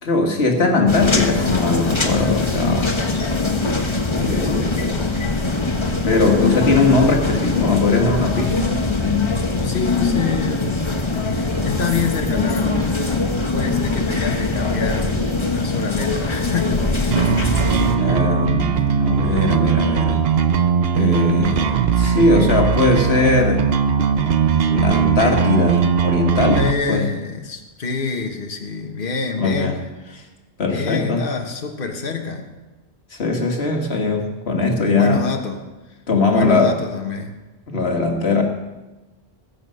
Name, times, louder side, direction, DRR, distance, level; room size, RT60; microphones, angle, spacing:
voice 1, 0.0-3.0 4.1-5.1 6.0-8.7 18.0-20.2 20.9-23.7 24.6-26.6 26.9-27.0 29.4-29.7 30.6-31.2 33.2-35.3 36.1-36.7 37.7-38.4, left 3 dB, 75° left, 2 dB, 2.0 m, -20 dB
sound 1, 0.9-17.9, left 3 dB, 30° left, 1.1 m, -22 dB
voice 2, 9.5-10.9 11.3-12.8 13.5-17.3 26.5-29.8 30.7-32.5 34.9-36.0 36.3-37.4, left 5 dB, 55° left, 3 dB, 1.5 m, -27 dB
sound 2, 17.1-26.7, right 7 dB, 70° right, 1.0 m, -19 dB
21.0 x 7.0 x 5.6 m, 1.1 s
omnidirectional pair, 1.1 m